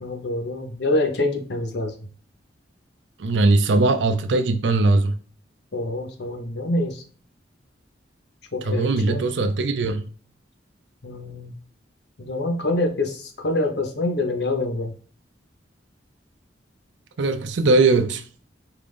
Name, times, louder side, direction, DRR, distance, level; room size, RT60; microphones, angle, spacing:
voice 1, 0.0-1.9 5.7-7.0 8.5-9.3 11.0-11.5 12.2-14.9, left 2 dB, 65° left, 0.9 m, -26 dB
voice 2, 3.2-5.1 8.6-10.0 17.2-18.2, right 2 dB, 80° right, 0.5 m, -20 dB
4.7 x 2.5 x 3.5 m
head